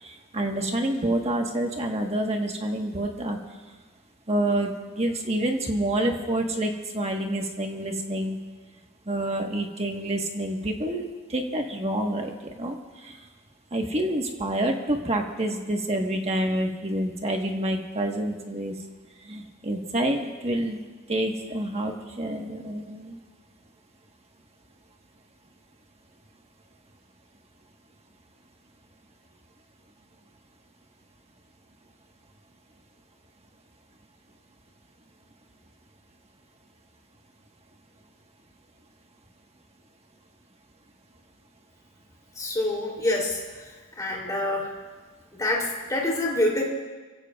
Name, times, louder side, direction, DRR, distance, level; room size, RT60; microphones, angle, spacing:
voice 1, 0.0-3.4 4.3-8.4 9.1-11.0 11.3-12.8 13.0-13.2 13.7-18.7 19.2-20.8 21.1-23.2, right 1 dB, 30° right, 2 dB, 1.5 m, -28 dB
voice 2, 42.3-43.4 44.0-44.7 45.4-46.6, left 1 dB, 15° left, -2 dB, 3.3 m, -26 dB
26.5 x 16.0 x 2.5 m, 1.3 s
head